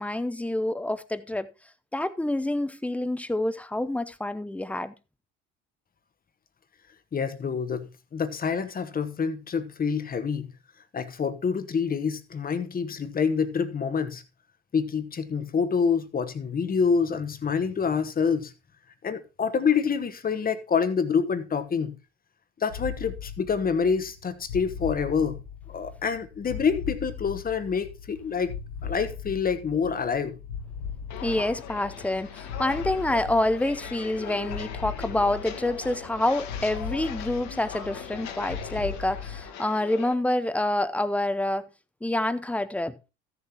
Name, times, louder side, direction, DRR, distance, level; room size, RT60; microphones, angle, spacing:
voice 1, 0.0-1.5 1.9-4.9 31.2-41.7 42.0-43.1, left 1 dB, 5° left, 0.6 m, -27 dB
voice 2, 7.1-10.5 10.9-14.2 14.7-18.5 19.0-22.0 22.6-25.4 25.7-28.5 28.8-30.4, left 6 dB, 25° left, 1.1 m, -27 dB
sound 1, 22.7-39.4, left 7 dB, 65° left, 1.1 m, -39 dB
Walk footsteps, 31.1-40.1, left 8 dB, 50° left, 1.4 m, -40 dB
15.0 x 7.0 x 2.9 m
figure-of-eight pair, 65°, 36 cm